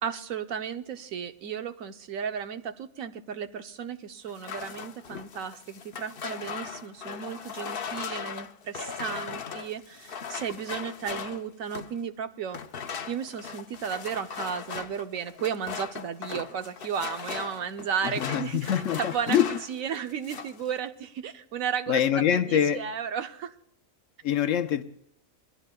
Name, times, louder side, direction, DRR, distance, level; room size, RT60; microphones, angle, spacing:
voice 1, 0.0-12.6 13.1-19.4 19.7-23.5, right 7 dB, 80° right, 1.2 m, -34 dB
sound 1, 4.3-12.0 12.5-19.8 20.1-20.6, left 6 dB, 50° left, 0.8 m, -38 dB
voice 2, 18.0-19.5 21.9-22.8 24.2-24.8, left 9 dB, 70° left, 1.1 m, -25 dB
26.5 x 20.0 x 2.3 m
omnidirectional pair, 1.4 m